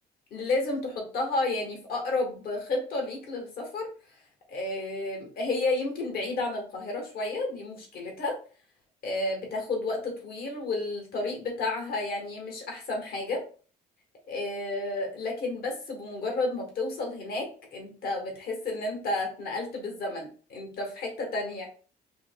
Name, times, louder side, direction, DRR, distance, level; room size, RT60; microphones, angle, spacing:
voice 1, 0.3-3.9 4.5-8.4 9.0-13.4 14.3-21.7, left 2 dB, 65° left, 1 dB, 1.5 m, -31 dB
6.2 x 2.8 x 2.2 m, 0.39 s
cardioid pair, 110°, 17 cm